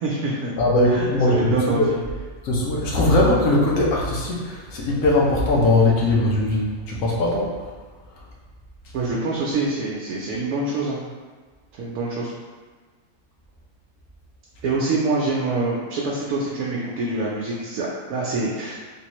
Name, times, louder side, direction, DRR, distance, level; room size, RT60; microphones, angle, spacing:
voice 1, 0.0-0.5 0.8-2.0 8.9-11.0 11.8-12.3 14.6-18.7, right 3 dB, 70° right, -4 dB, 0.9 m, -25 dB
voice 2, 0.6-1.9 2.4-7.5, left 2 dB, 75° left, -3 dB, 1.2 m, -20 dB
3.5 x 2.6 x 2.9 m, 1.4 s
omnidirectional pair, 1.6 m